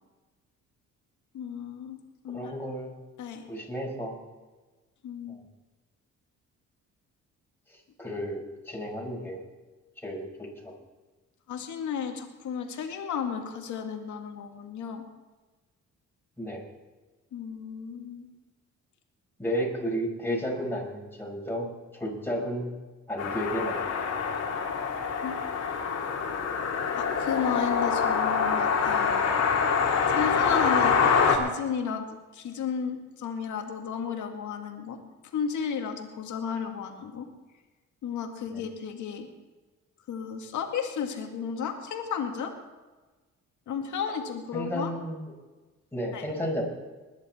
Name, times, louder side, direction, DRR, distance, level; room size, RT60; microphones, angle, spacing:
voice 1, 1.3-2.0 2.2-2.5 3.2-3.4 5.0-5.4 11.5-15.0 17.3-18.3 25.2-25.4 26.9-29.3 30.1-31.0 31.3-32.1 32.3-35.0 35.3-37.3 38.0-39.3 40.1-42.5 43.7-44.9 46.1-46.3, left 7 dB, 75° left, 4 dB, 2.2 m, -33 dB
voice 2, 2.3-2.9 3.5-4.2 5.3-5.4 8.0-9.4 10.0-10.7 16.4-16.6 19.4-22.7 23.1-24.2 38.5-38.6 44.5-45.3 45.9-46.6, equal, 5° left, -1 dB, 5.5 m, -33 dB
sound 1, 23.2-31.4, left 6 dB, 55° left, 2.6 m, -25 dB
20.5 x 10.5 x 4.4 m, 1.2 s
cardioid pair, 90°, 30 cm